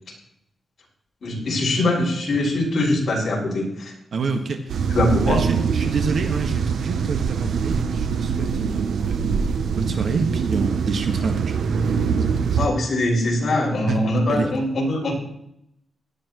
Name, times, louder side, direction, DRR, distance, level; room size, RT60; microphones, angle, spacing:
voice 1, 1.2-3.9 4.9-5.4 12.6-15.1, left 1 dB, 50° left, -3 dB, 6.2 m, -22 dB
voice 2, 4.1-4.8 5.3-11.9 12.2-12.7 13.9-14.5, right 4 dB, 60° right, 5 dB, 1.6 m, -28 dB
sound 1, 4.7-12.7, right 6 dB, 90° right, 0.8 m, -24 dB
17.5 x 12.5 x 3.1 m, 0.77 s
wide cardioid pair, 150°, 0 cm